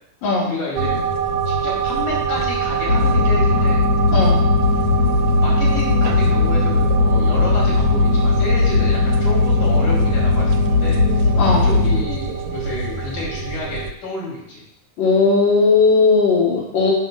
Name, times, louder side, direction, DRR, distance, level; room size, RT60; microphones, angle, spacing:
voice 1, 0.4-1.0 1.5-3.8 5.4-11.3 11.6-14.6, left 2 dB, 85° left, -4 dB, 4.2 m, -30 dB
sound 1, 0.8-13.9, right 5 dB, 85° right, 2.2 m, -24 dB
sound 2, 2.9-12.0, left 3 dB, 50° left, 2.4 m, -17 dB
voice 2, 4.1-4.4 11.4-11.7 15.0-16.9, left 4 dB, 65° left, -7 dB, 3.5 m, -16 dB
7.8 x 5.7 x 6.3 m, 0.81 s
omnidirectional pair, 3.4 m